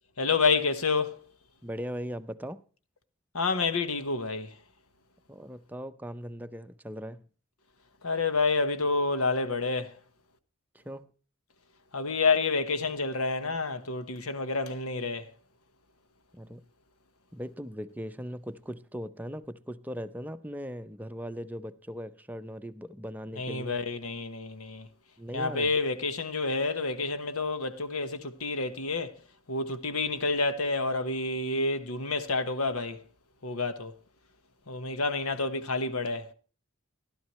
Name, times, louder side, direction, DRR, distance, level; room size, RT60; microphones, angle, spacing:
voice 1, 0.2-1.2 3.3-4.5 8.0-9.9 11.9-15.3 23.4-24.9 25.3-29.1 29.5-33.0 33.4-33.9 34.7-36.3, left 3 dB, 80° left, 1.3 m, -29 dB
voice 2, 1.6-2.6 5.3-7.2 10.7-11.1 16.3-16.6 17.3-23.8 25.2-25.7, equal, 10° right, 0.6 m, -39 dB
15.5 x 12.5 x 3.1 m
head